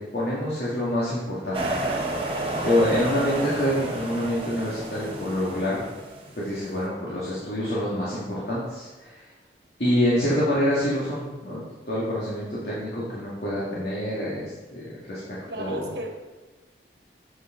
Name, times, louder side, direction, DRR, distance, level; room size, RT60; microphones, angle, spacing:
voice 1, 0.1-1.6 2.1-5.8 6.4-9.2 9.8-11.6 11.9-15.2 15.6-15.9, left 1 dB, 65° left, -8 dB, 2.1 m, -26 dB
sound 1, 1.5-6.5, right 2 dB, 30° right, 1.1 m, -31 dB
voice 2, 15.5-16.4, right 1 dB, 75° right, 2 dB, 1.4 m, -35 dB
8.0 x 7.4 x 3.8 m, 1.2 s
head